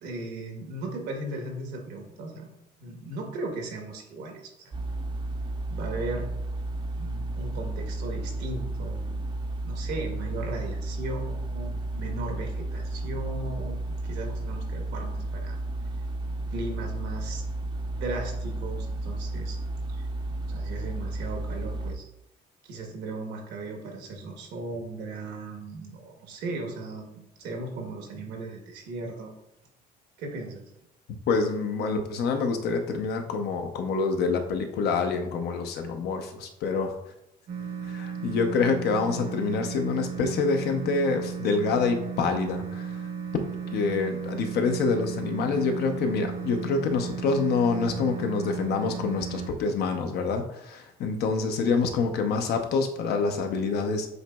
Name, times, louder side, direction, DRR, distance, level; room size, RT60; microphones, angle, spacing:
voice 1, 0.0-2.5 2.8-4.7 5.7-6.3 7.0-9.3 9.6-15.6 16.5-17.4 17.9-19.6 19.9-20.1 20.5-22.0 22.6-29.3 30.2-30.6, right 2 dB, 85° right, 3 dB, 1.1 m, -37 dB
sound 1, 4.7-22.0, right 2 dB, 30° right, 0.5 m, -33 dB
voice 2, 31.3-37.0 37.9-43.0 43.7-54.1, left 4 dB, 70° left, 6 dB, 0.7 m, -26 dB
sound 2, 37.5-49.5, right 7 dB, 60° right, 0.9 m, -35 dB
7.8 x 3.0 x 2.3 m, 0.81 s
cardioid pair, 110°, 17 cm